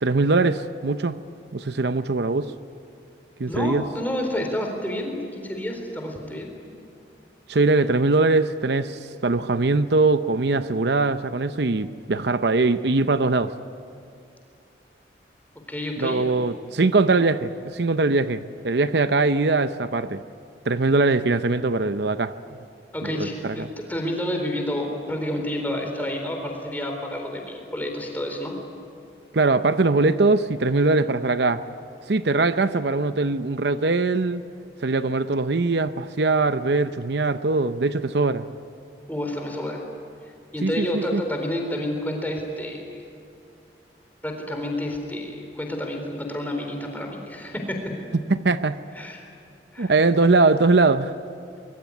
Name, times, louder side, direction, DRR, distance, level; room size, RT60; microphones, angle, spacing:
voice 1, 0.0-1.2 1.5-2.5 3.4-3.8 7.5-13.5 16.0-20.2 20.7-22.3 23.0-23.7 29.3-31.6 32.1-34.4 34.8-38.5 40.6-41.2 48.1-48.8 49.8-51.1, right 3 dB, 65° right, 11 dB, 0.7 m, -21 dB
voice 2, 3.5-6.5 15.7-16.3 22.9-28.6 39.1-39.8 40.5-43.0 44.2-47.8 49.0-49.2 49.7-49.9, left 1 dB, 10° left, 2 dB, 4.0 m, -29 dB
24.5 x 23.0 x 9.6 m, 2.4 s
head